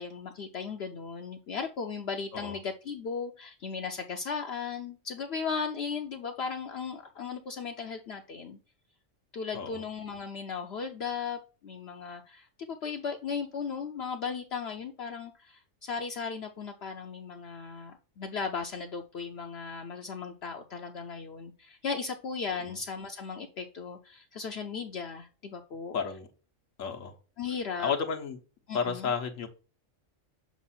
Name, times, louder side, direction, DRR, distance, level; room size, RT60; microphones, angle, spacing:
voice 1, 0.0-8.6 9.3-26.0 27.4-27.9 28.7-29.1, left 5 dB, 60° left, 3 dB, 0.8 m, -36 dB
voice 2, 25.9-26.3 26.8-27.1 27.8-28.4 28.7-29.5, left 6 dB, 85° left, 3 dB, 1.3 m, -32 dB
7.2 x 2.5 x 5.5 m, 0.36 s
omnidirectional pair, 1.3 m